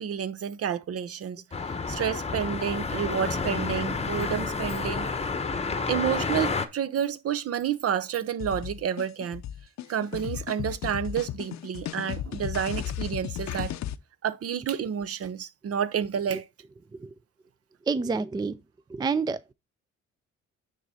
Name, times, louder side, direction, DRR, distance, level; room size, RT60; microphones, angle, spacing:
voice 1, 0.0-1.4 1.9-5.1 5.9-9.4 9.9-13.8 14.2-16.5, right 8 dB, 50° right, 0.7 m, -30 dB
sound 1, 1.5-6.7, left 4 dB, 20° left, 1.0 m, -30 dB
sound 2, 8.4-14.0, left 12 dB, 65° left, 0.6 m, -35 dB
voice 2, 17.9-18.6 18.9-19.5, right 4 dB, 15° right, 0.4 m, -28 dB
9.3 x 3.8 x 4.1 m
cardioid pair, 90°, 30 cm